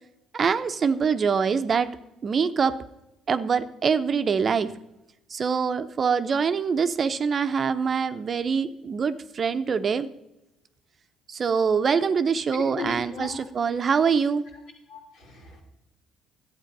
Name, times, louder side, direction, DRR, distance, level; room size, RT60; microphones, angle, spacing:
voice 1, 0.3-1.9 2.2-2.7 3.3-4.7 5.3-10.1 11.3-14.4, right 6 dB, 45° right, 11 dB, 0.7 m, -24 dB
voice 2, 12.5-13.5 14.9-15.6, left 4 dB, 85° left, -1 dB, 3.2 m, -37 dB
12.0 x 8.2 x 5.4 m, 0.92 s
supercardioid pair, 70°, 0 cm